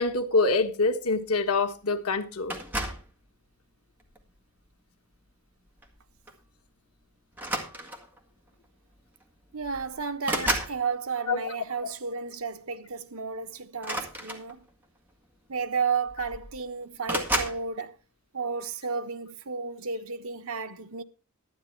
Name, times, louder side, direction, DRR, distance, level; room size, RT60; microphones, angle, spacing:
voice 1, 0.0-2.5 11.3-11.5 11.8-11.9, left 3 dB, 85° left, 1.5 m, -25 dB
sound 1, 2.5-3.1 4.0-4.3 5.8-6.0 6.3-6.5 7.3-8.2 9.2-9.3 9.6-10.8 13.7-14.8 15.7-15.8 16.1-16.6 17.1-17.6, right 1 dB, 10° right, 1.8 m, -32 dB
voice 2, 9.5-14.7 15.5-18.0 18.3-21.0, right 5 dB, 70° right, 1.1 m, -32 dB
12.5 x 9.8 x 4.5 m
head